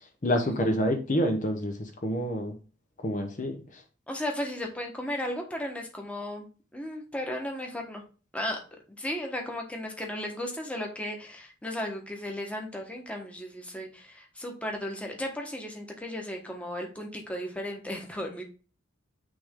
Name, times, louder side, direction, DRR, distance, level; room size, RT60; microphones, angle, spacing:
voice 1, 0.2-2.6 3.0-3.8, equal, 40° left, 4 dB, 0.9 m, -28 dB
voice 2, 4.1-6.5 6.7-8.0 8.3-8.6 9.0-18.4, left 1 dB, 5° left, 1 dB, 1.3 m, -35 dB
9.3 x 3.5 x 3.7 m, 0.36 s
head